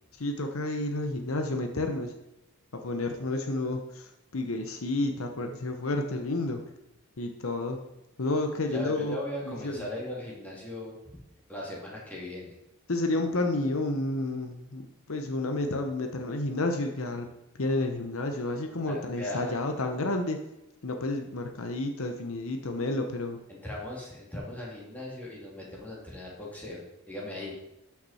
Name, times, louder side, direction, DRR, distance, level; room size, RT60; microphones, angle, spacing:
voice 1, 0.2-2.1 2.7-6.6 7.2-7.8 8.2-9.2 9.4-9.9 12.9-17.3 17.6-20.4 20.8-23.4, left 2 dB, 70° left, 5 dB, 0.9 m, -30 dB
voice 2, 8.6-11.0 11.5-12.6 18.9-19.5 23.5-27.6, left 1 dB, 5° left, -5 dB, 2.7 m, -38 dB
12.5 x 5.9 x 4.3 m, 0.91 s
head